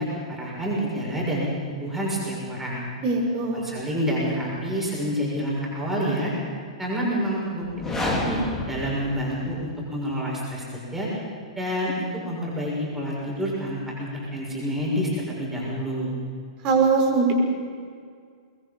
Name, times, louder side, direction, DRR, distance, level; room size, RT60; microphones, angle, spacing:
voice 1, 0.0-1.5 1.8-2.8 3.5-6.3 6.8-7.9 8.2-11.1 11.5-16.1, equal, 5° right, -5 dB, 6.7 m, -28 dB
voice 2, 3.0-3.6 16.6-17.3, right 4 dB, 30° right, 0 dB, 5.2 m, -21 dB
sound 1, 7.6-9.8, left 1 dB, 10° left, 4.1 m, -29 dB
24.5 x 21.0 x 5.5 m, 2.1 s
figure-of-eight pair, 105°, 3 cm